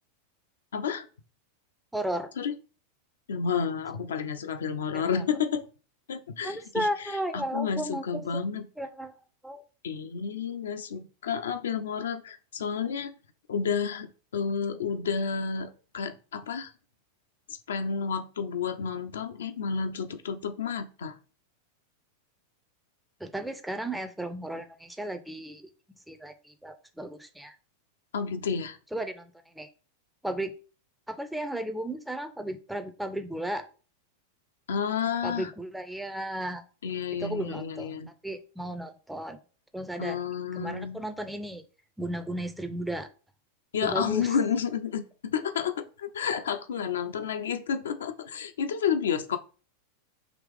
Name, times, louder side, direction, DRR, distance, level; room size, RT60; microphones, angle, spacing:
voice 1, 0.7-1.1 2.4-2.5 3.3-5.6 6.1-8.7 9.8-13.1 13.5-16.7 17.5-21.1 28.1-28.8 34.7-35.5 36.8-38.1 40.0-41.0 43.7-49.4, left 6 dB, 65° left, 8 dB, 0.5 m, -31 dB
voice 2, 1.9-2.3 4.9-5.2 6.4-8.4 8.8-9.2 9.4-9.6 23.2-25.6 26.1-27.5 28.9-29.7 30.2-30.5 31.1-33.7 35.2-36.6 37.2-37.9 38.2-39.4 39.7-40.2 40.5-41.6 42.0-43.1 43.8-44.3, right 1 dB, 5° right, 8 dB, 0.5 m, -34 dB
5.0 x 3.0 x 3.3 m, 0.37 s
figure-of-eight pair, 90°, 0 cm